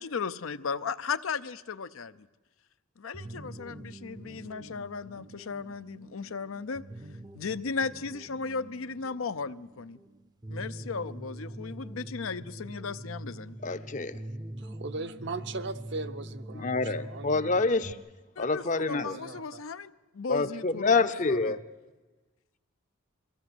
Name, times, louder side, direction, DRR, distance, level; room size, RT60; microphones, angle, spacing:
voice 1, 0.0-2.3 3.0-6.8 7.3-10.0 10.5-13.6 18.4-21.6, left 5 dB, 80° left, 12 dB, 0.6 m, -36 dB
sound 1, 3.1-17.9, right 1 dB, 20° right, 0.6 m, -44 dB
voice 2, 13.6-14.2 16.5-17.9 18.4-19.2 20.3-21.6, left 3 dB, 35° left, 11 dB, 0.7 m, -27 dB
voice 3, 14.6-17.7 18.8-19.6, right 3 dB, 55° right, 9 dB, 0.8 m, -39 dB
22.5 x 15.5 x 7.9 m, 1.2 s
head